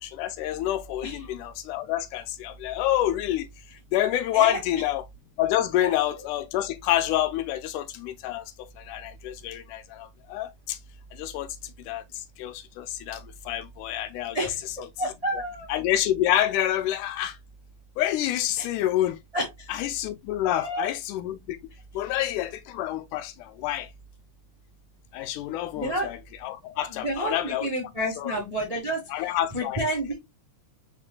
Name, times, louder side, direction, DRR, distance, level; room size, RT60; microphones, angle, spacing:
voice 1, 0.0-3.5 3.9-5.0 5.4-10.8 11.1-11.6 11.9-14.5 15.3-15.4 15.7-17.4 18.0-19.2 19.7-21.6 21.9-23.9 25.1-27.7 28.2-28.4 29.1-29.8, left 12 dB, 80° left, 2.1 m, -28 dB
voice 2, 14.3-15.7 18.6-18.7 19.3-19.7 20.5-20.9 25.7-26.1 26.9-29.2 29.5-30.1, right 1 dB, 50° right, 0.4 m, -30 dB
4.8 x 4.3 x 2.3 m
omnidirectional pair, 3.6 m